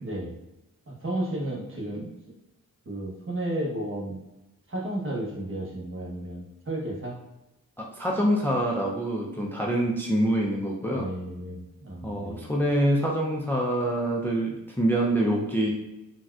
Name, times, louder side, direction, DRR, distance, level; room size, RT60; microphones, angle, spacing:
voice 1, 0.0-0.4 0.9-2.1 2.8-4.2 4.7-7.2 10.9-12.4, right 1 dB, 40° right, -2 dB, 1.0 m, -33 dB
voice 2, 7.8-11.1 12.0-15.7, right 1 dB, 5° left, -2 dB, 0.4 m, -25 dB
4.0 x 2.3 x 2.3 m, 0.97 s
cardioid pair, 60°, 33 cm